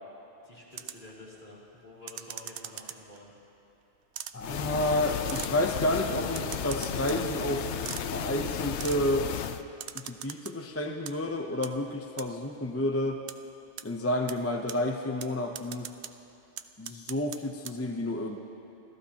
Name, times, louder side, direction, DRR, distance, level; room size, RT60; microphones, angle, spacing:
voice 1, 0.4-3.3, left 1 dB, 45° left, -6 dB, 3.2 m, -49 dB
sound 1, 0.7-1.1 2.1-3.2 4.1-4.3 5.3-5.5 6.3-7.2 7.9-8.0 8.8-9.0 9.8-10.5 10.9-11.1 11.6-11.7 12.2-12.3 13.3-13.4 13.8-13.9 14.3-14.4 14.7-14.8 15.2-15.3 15.5-16.1 16.6-17.4 17.6-17.7, right 10 dB, 75° right, 0.8 m, -40 dB
voice 2, 4.3-7.7 8.1-9.3 9.9-13.2 13.8-15.9 16.8-18.4, left 1 dB, 15° left, 3 dB, 0.6 m, -30 dB
sound 2, 4.4-9.6, left 9 dB, 80° left, 0.9 m, -34 dB
sound 3, 6.1-11.1, right 4 dB, 50° right, 1.1 m, -47 dB
27.5 x 14.5 x 2.9 m, 3.0 s
omnidirectional pair, 1.2 m